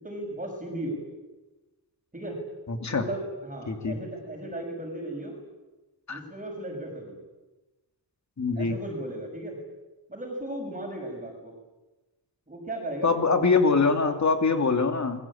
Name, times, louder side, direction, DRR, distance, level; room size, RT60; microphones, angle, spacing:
voice 1, 0.0-1.0 2.1-2.4 2.9-5.4 6.1-7.2 8.5-9.6 10.1-11.5 12.5-13.2 14.5-14.7, right 1 dB, 20° right, 0 dB, 6.3 m, -36 dB
voice 2, 2.7-3.0 3.7-4.0 6.1-6.2 8.4-8.8 13.0-15.2, left 4 dB, 45° left, 6 dB, 2.7 m, -23 dB
29.0 x 22.0 x 8.7 m, 1.1 s
wide cardioid pair, 180°, 40 cm